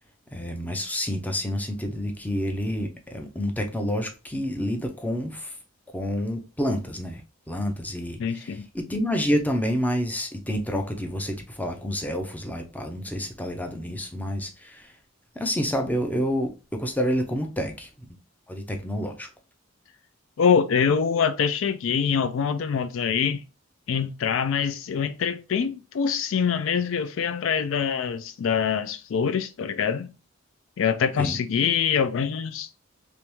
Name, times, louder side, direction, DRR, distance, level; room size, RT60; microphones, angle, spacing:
voice 1, 0.3-5.6 5.9-7.2 7.5-14.9 15.3-18.2 18.5-19.3 31.2-31.4, equal, 10° left, 0.5 m, -29 dB
voice 2, 8.2-8.6 20.4-23.4 23.9-30.1 30.8-32.7, left 7 dB, 65° left, 0.4 m, -24 dB
3.4 x 3.0 x 3.0 m
head